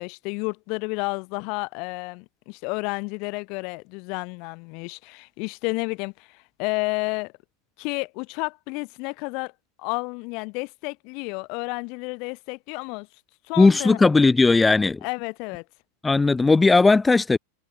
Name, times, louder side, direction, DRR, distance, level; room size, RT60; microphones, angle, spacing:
voice 1, 0.0-7.3 7.8-9.5 9.8-13.1 13.5-14.0 15.0-15.6, left 31 dB, 40° left, 4.4 m, -31 dB
voice 2, 13.6-15.0 16.0-17.4, left 3 dB, 10° left, 4.0 m, -17 dB
supercardioid pair, 160°, 0 cm